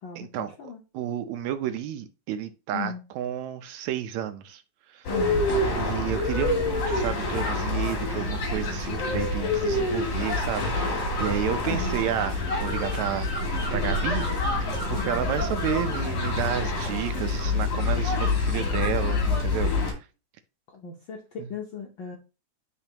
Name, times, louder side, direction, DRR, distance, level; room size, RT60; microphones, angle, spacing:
voice 1, 0.2-4.6 4.9-5.1 5.7-14.3 14.9-20.1 21.4-21.5, right 10 dB, 80° right, 1.8 m, -31 dB
sound 1, 5.0-19.9, left 2 dB, 55° left, 3.3 m, -27 dB
voice 2, 5.1-5.5 11.6-12.0 14.9-15.3 20.7-22.2, left 6 dB, 85° left, 1.0 m, -36 dB
11.5 x 4.1 x 2.9 m
omnidirectional pair, 3.4 m